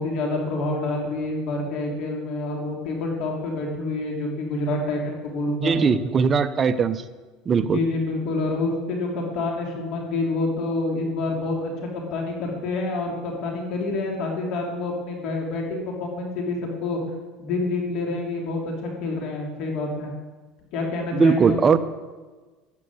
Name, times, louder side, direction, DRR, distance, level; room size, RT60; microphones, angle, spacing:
voice 1, 0.0-5.7 7.5-16.6 16.8-17.0 17.4-20.1 20.7-21.6, left 2 dB, 55° left, 0 dB, 3.0 m, -27 dB
voice 2, 5.6-7.0 7.5-7.8 21.1-21.8, right 5 dB, 25° right, 10 dB, 0.7 m, -19 dB
13.0 x 8.7 x 9.5 m, 1.3 s
cardioid pair, 150°, 0 cm